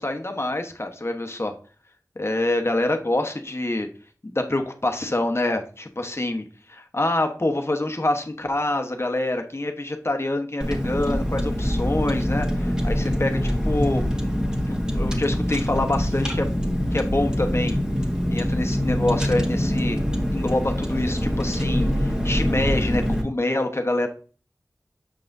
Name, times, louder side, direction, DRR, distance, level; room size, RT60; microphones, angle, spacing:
voice 1, 0.0-1.5 2.2-3.9 4.2-14.0 14.7-16.5 16.9-17.8 18.3-20.0 20.3-24.1, left 2 dB, 45° left, 5 dB, 1.2 m, -26 dB
Car, 10.6-23.2, equal, 10° right, 1.8 m, -24 dB
7.6 x 5.6 x 2.7 m, 0.39 s
wide cardioid pair, 45°, 6 cm